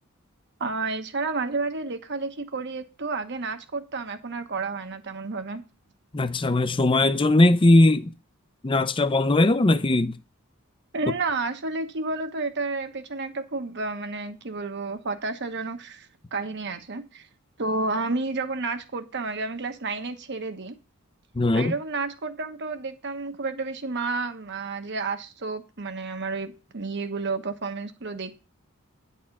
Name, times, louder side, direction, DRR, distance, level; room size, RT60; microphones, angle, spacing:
voice 1, 0.6-5.6 10.9-17.3 17.6-20.7 21.5-28.4, right 3 dB, 55° right, 1.1 m, -31 dB
voice 2, 6.1-8.1 8.6-10.2 21.4-21.7, left 2 dB, 25° left, 0.6 m, -19 dB
10.0 x 4.2 x 7.1 m
head